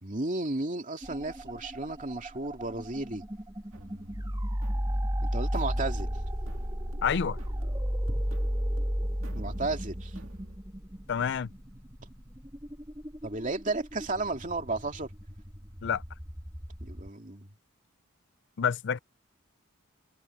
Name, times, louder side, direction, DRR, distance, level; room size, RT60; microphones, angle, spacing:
voice 1, 0.0-3.2 5.2-6.1 8.1-8.4 9.3-10.1 13.2-15.1 16.8-17.5, right 2 dB, 35° right, 2.5 m, -33 dB
sound 1, 1.0-17.1, equal, 15° right, 3.0 m, -34 dB
sound 2, 3.7-10.6, right 1 dB, 70° right, 2.4 m, -48 dB
voice 2, 7.0-7.4 11.1-11.5 15.8-16.0 18.6-19.0, left 7 dB, 55° left, 0.4 m, -28 dB
head